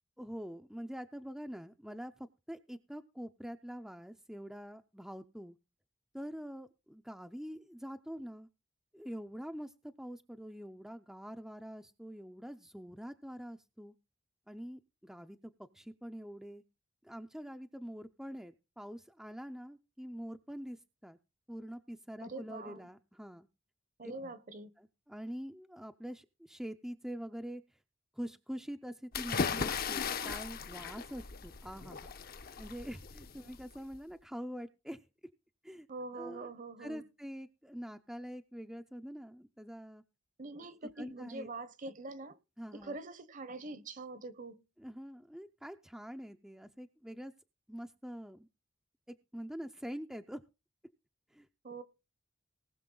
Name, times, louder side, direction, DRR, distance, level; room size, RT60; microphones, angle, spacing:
voice 1, 0.2-5.6 6.1-8.5 8.9-13.9 14.5-16.6 17.0-21.2 21.5-23.5 24.0-24.1 24.8-27.6 28.1-35.0 35.6-35.9 36.2-36.5 36.8-40.0 40.8-41.5 42.6-43.0 44.8-47.3 47.7-48.5 49.1-50.4 51.3-51.5, equal, 5° right, 0.5 m, -45 dB
voice 2, 22.2-22.8 24.0-24.7 35.9-37.0 40.4-42.4 42.7-44.6 51.6-51.8, right 2 dB, 40° right, 0.9 m, -44 dB
sound 1, 29.1-34.0, left 5 dB, 50° left, 0.8 m, -37 dB
19.5 x 6.5 x 3.9 m
head